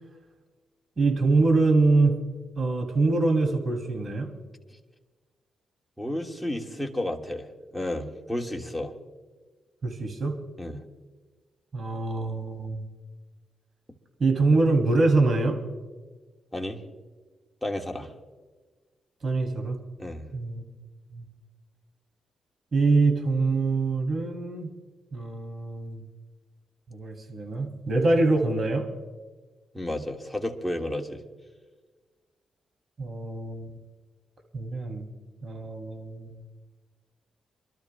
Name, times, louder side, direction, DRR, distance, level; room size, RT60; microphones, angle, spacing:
voice 1, 1.0-2.2 2.6-4.3 9.8-10.4 11.7-12.8 14.2-15.6 19.2-19.8 20.3-20.6 21.1-21.3 22.7-24.7 25.1-26.0 26.9-28.9 33.0-33.7 34.5-35.1 35.4-36.3, right 3 dB, 50° right, 4 dB, 2.8 m, -24 dB
voice 2, 6.0-8.9 10.6-10.8 16.5-16.8 17.6-18.1 20.0-20.3 29.7-31.2, left 1 dB, 5° left, 1 dB, 1.7 m, -32 dB
28.5 x 12.5 x 2.3 m, 1.4 s
supercardioid pair, 55°, 0 cm